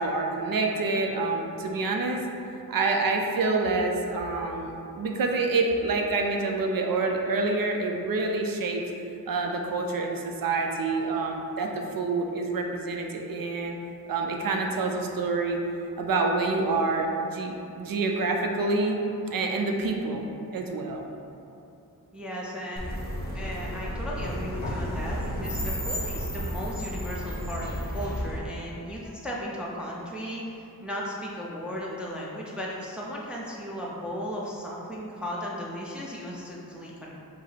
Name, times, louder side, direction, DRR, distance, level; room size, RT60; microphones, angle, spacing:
voice 1, 0.0-2.2 2.7-8.8 9.3-13.8 14.1-15.6 16.0-19.0 19.3-21.0, right 3 dB, 65° right, 2 dB, 0.5 m, -27 dB
voice 2, 22.1-23.1 23.3-37.2, equal, 5° right, -4 dB, 0.5 m, -36 dB
sound 1, 22.8-28.4, equal, 25° left, 0.8 m, -32 dB
5.1 x 2.0 x 4.1 m, 2.8 s
wide cardioid pair, 105°, 38 cm